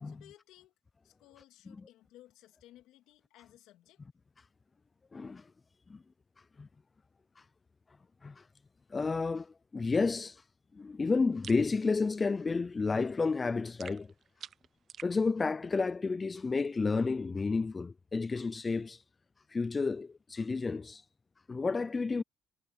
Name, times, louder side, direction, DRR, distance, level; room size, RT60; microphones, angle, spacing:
voice 1, 0.0-0.7 1.0-4.0, left 14 dB, 80° left, 3.0 m, -59 dB
voice 2, 5.1-5.5 5.9-6.0 6.6-6.7 7.4-7.5 8.2-8.4 8.9-10.4 10.7-14.1 15.0-19.0 19.5-21.0 21.5-22.2, left 4 dB, 25° left, 0.4 m, -31 dB
sound 1, 11.4-11.7 13.8-15.2, right 8 dB, 55° right, 0.7 m, -48 dB
supercardioid pair, 85°, 0 cm